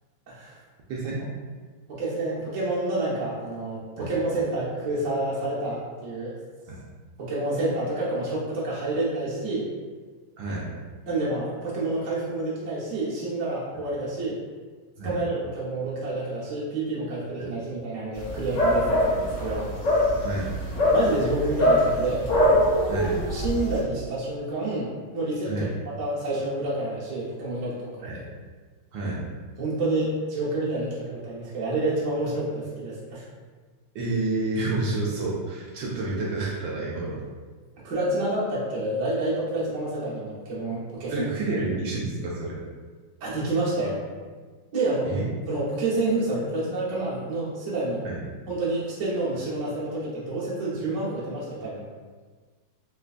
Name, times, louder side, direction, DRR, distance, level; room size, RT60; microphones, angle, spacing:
voice 1, 0.9-1.2 4.0-4.1 6.7-6.8 10.4-10.7 15.0-15.2 20.2-20.5 22.9-23.2 25.5-25.7 28.0-28.2 28.9-29.2 33.9-37.2 41.1-42.6 45.0-45.3 48.0-48.2, right 2 dB, 75° right, -5 dB, 1.3 m, -29 dB
voice 2, 1.9-6.3 7.2-9.6 11.1-14.4 15.0-19.7 20.9-22.2 23.3-25.7 26.0-28.2 29.6-33.2 37.8-41.3 43.2-44.0 44.7-45.1 45.5-48.1 48.5-51.8, right 2 dB, 50° right, -7 dB, 1.1 m, -28 dB
sound 1, 18.1-23.8, equal, 55° left, 0.9 m, -23 dB
3.9 x 2.2 x 2.4 m, 1.4 s
omnidirectional pair, 2.2 m